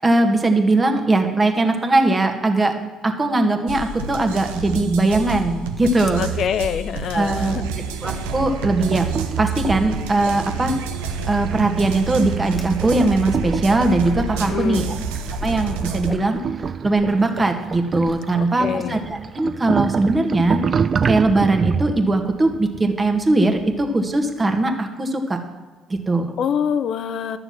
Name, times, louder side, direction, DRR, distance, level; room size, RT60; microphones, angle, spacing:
voice 1, 0.0-2.7 3.0-6.2 7.1-7.7 8.0-9.1 9.4-10.7 11.3-14.8 15.4-16.4 16.8-20.6 21.1-25.4 25.9-26.3, right 2 dB, 25° right, 5 dB, 1.7 m, -20 dB
sound 1, 3.7-16.1, right 5 dB, 75° right, 0.8 m, -28 dB
voice 2, 6.2-7.7 14.4-15.0 18.3-19.0 26.4-27.4, left 8 dB, 55° left, 12 dB, 0.7 m, -25 dB
sound 2, 8.0-24.2, right 6 dB, 45° right, 0.5 m, -29 dB
Whoosh swoosh swish, 12.5-13.0 13.2-13.8 14.1-14.6 15.0-15.1 15.4-15.6 15.9-18.2, left 1 dB, 15° left, 1.2 m, -36 dB
11.5 x 6.9 x 7.3 m, 1.4 s
hypercardioid pair, 50°, 0 cm